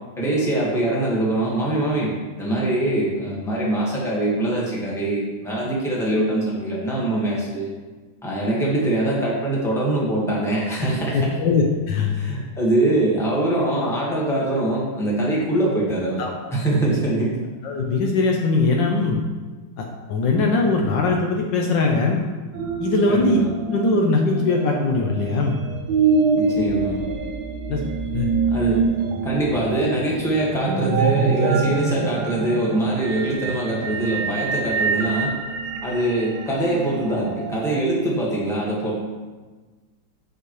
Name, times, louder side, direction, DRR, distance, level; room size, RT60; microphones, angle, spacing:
voice 1, 0.2-2.1 2.4-7.7 8.2-11.2 12.1-16.2 16.5-17.4 23.1-23.5 26.3-27.0 28.5-28.8 29.2-35.3 35.8-39.0, right 1 dB, ahead, -5 dB, 1.3 m, -23 dB
voice 2, 11.1-12.1 16.2-16.3 17.6-19.2 19.8-22.2 22.8-23.4 23.7-25.6 27.7-27.8 28.1-28.3, left 3 dB, 70° left, 1 dB, 1.3 m, -21 dB
sound 1, 22.5-37.8, right 4 dB, 70° right, 1.1 m, -25 dB
8.4 x 5.4 x 3.1 m, 1.3 s
omnidirectional pair, 2.2 m